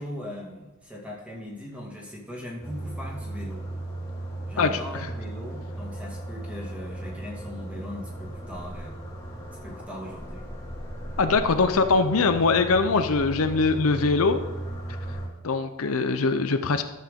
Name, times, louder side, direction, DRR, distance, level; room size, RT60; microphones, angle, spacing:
voice 1, 0.0-3.7 4.5-9.0 9.6-10.5, left 1 dB, 5° right, -3 dB, 2.2 m, -39 dB
sound 1, 2.6-15.3, right 1 dB, 15° left, 2.3 m, -36 dB
voice 2, 11.2-14.4 15.4-16.8, left 4 dB, 70° left, 8 dB, 0.6 m, -22 dB
13.5 x 7.1 x 3.7 m, 1.1 s
head